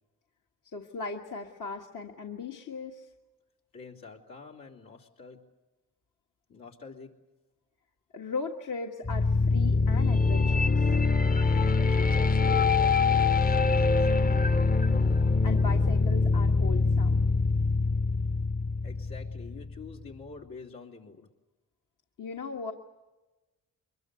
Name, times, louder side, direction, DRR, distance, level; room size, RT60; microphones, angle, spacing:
voice 1, 0.7-3.1 8.1-10.8 15.4-17.2 22.2-22.7, left 4 dB, 65° left, 1 dB, 1.6 m, -38 dB
voice 2, 3.7-5.4 6.5-7.1 11.9-14.6 18.8-21.3, left 4 dB, 85° left, -1 dB, 3.4 m, -47 dB
sound 1, 9.0-20.0, left 4 dB, 25° left, 0.8 m, -24 dB
23.5 x 21.5 x 8.2 m, 1.1 s
cardioid pair, 55°, 34 cm